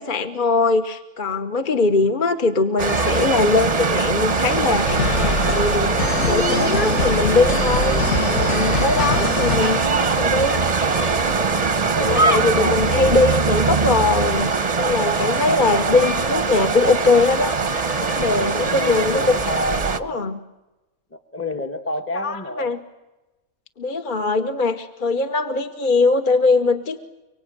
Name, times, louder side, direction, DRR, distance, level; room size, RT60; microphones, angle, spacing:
voice 1, 0.0-10.6 11.8-17.5 18.0-19.4 20.0-20.4 22.2-22.8 23.8-27.0, left 3 dB, 40° left, 6 dB, 1.2 m, -21 dB
sound 1, 2.8-20.0, right 4 dB, 30° right, 0.9 m, -21 dB
sound 2, 4.8-9.9, left 4 dB, 55° left, 1.4 m, -24 dB
voice 2, 12.0-13.2 18.5-20.4 21.1-22.8, left 3 dB, 10° left, 6 dB, 1.0 m, -29 dB
24.5 x 24.5 x 8.8 m, 1.1 s
omnidirectional pair, 1.5 m